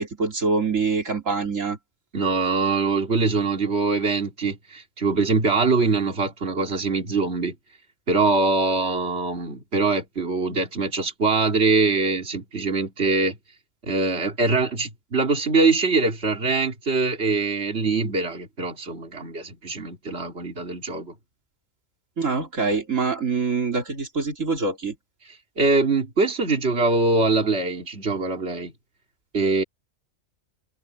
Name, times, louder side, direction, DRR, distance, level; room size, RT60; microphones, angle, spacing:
voice 1, 0.0-1.8 22.2-25.0, right 4 dB, 75° right, 3.5 m, -25 dB
voice 2, 2.1-7.6 8.1-13.4 13.8-21.1 25.2-28.7 29.3-29.6, right 3 dB, 55° right, 3.2 m, -23 dB
omnidirectional pair, 1.4 m